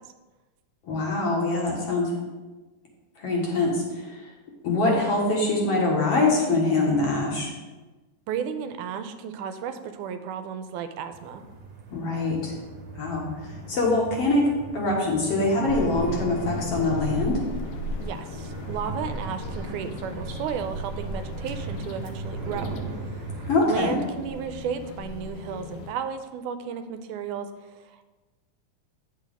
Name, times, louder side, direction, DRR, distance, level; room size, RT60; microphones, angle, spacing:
voice 1, 0.8-2.1 3.2-4.3 4.6-7.5 11.9-12.6 12.9-17.4 23.5-24.0, left 2 dB, 55° left, -2 dB, 2.1 m, -24 dB
voice 2, 8.3-11.5 18.0-28.1, right 7 dB, 85° right, 9 dB, 2.0 m, -34 dB
sound 1, 11.1-23.6, right 3 dB, 65° right, 1.9 m, -37 dB
sound 2, 15.7-25.9, left 2 dB, 75° left, 1.9 m, -37 dB
9.0 x 6.4 x 3.4 m, 1.2 s
omnidirectional pair, 3.5 m